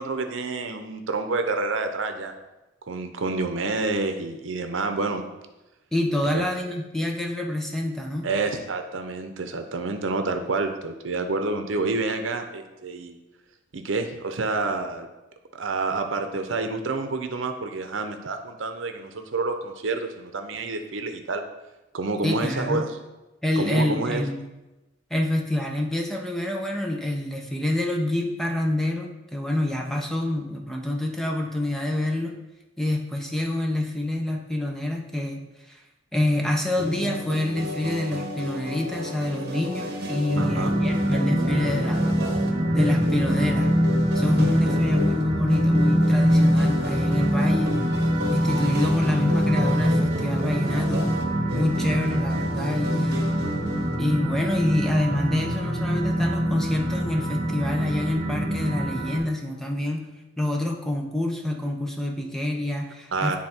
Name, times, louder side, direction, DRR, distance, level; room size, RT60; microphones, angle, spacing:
voice 1, 0.0-2.3 2.9-5.2 6.3-6.5 8.2-13.2 13.7-15.1 15.5-21.4 21.9-22.9 23.6-24.3 40.4-40.7 63.1-63.4, right 3 dB, 80° right, 7 dB, 0.7 m, -28 dB
voice 2, 5.9-8.3 22.2-22.9 23.4-24.4 25.1-32.4 32.8-35.4 35.7-35.8 36.1-42.0 42.7-43.7 44.1-47.8 48.3-51.1 51.5-53.3 54.0-60.1 60.4-63.4, left 1 dB, ahead, 1 dB, 0.7 m, -27 dB
sound 1, 36.8-54.2, left 1 dB, 55° right, 1.1 m, -33 dB
sound 2, 40.3-59.2, equal, 40° right, 1.7 m, -24 dB
9.9 x 3.6 x 4.4 m, 1.0 s
head